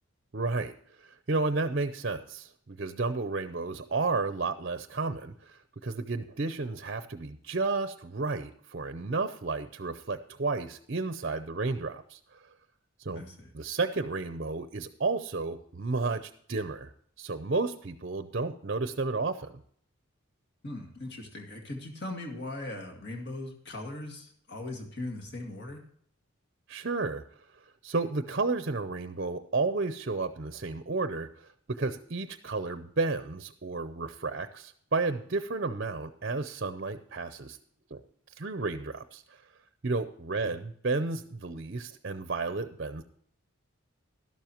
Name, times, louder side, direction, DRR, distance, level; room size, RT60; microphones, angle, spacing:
voice 1, 0.3-12.4 13.0-13.2 13.5-16.9 17.2-19.6 26.7-27.2 27.8-31.5 31.8-37.6 37.9-38.0 38.4-39.4 39.8-43.0, right 3 dB, 50° right, 10 dB, 0.6 m, -32 dB
voice 2, 13.1-13.5 20.6-25.8 40.4-40.5, left 2 dB, 50° left, 3 dB, 2.1 m, -39 dB
12.5 x 12.0 x 3.0 m, 0.63 s
head